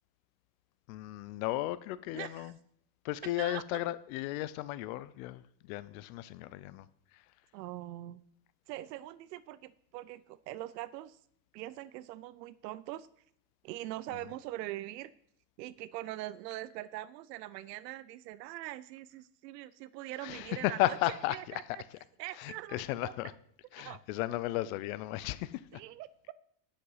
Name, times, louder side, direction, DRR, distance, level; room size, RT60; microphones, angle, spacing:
voice 1, 0.9-2.5 3.0-6.9 7.1-7.2 20.2-21.6 22.4-23.3 23.7-25.8, left 16 dB, 55° left, 0.7 m, -35 dB
voice 2, 2.1-2.5 3.2-3.6 7.5-8.2 8.7-11.2 11.5-13.1 13.6-15.1 15.6-21.8 22.2-23.1 23.8-24.0 25.7-26.1, right 15 dB, 80° right, 0.7 m, -42 dB
10.5 x 6.6 x 5.6 m
supercardioid pair, 145°, 49 cm